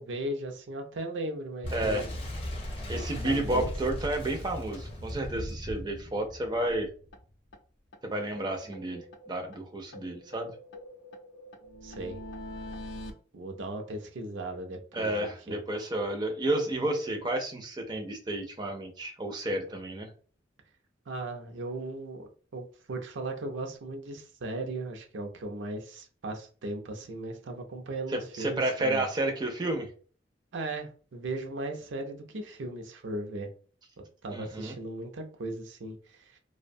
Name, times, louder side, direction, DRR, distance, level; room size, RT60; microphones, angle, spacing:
voice 1, 0.0-2.1 2.9-3.7 11.8-12.2 13.3-15.6 21.1-29.1 30.5-33.5 34.2-36.4, right 2 dB, 80° right, 4 dB, 0.5 m, -37 dB
Boom, 1.6-7.2, left 1 dB, 30° left, 0.6 m, -37 dB
voice 2, 1.7-2.1 2.9-6.9 8.0-10.5 14.9-20.1 28.1-29.9 34.3-34.8, right 1 dB, 25° right, 3 dB, 0.4 m, -31 dB
sound 1, 6.7-6.8 7.1-7.2 7.5-7.6 7.9-8.0 8.3-9.6 9.9-13.1, left 1 dB, 75° left, 0.5 m, -44 dB
2.5 x 2.1 x 2.6 m, 0.40 s
head